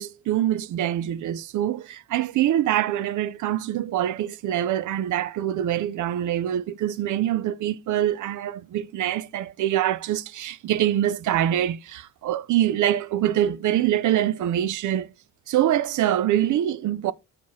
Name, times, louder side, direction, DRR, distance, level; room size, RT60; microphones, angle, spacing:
voice 1, 0.0-15.1 15.5-17.1, right 12 dB, 70° right, 0.6 m, -24 dB
7.1 x 4.7 x 4.2 m
cardioid pair, 140°, 31 cm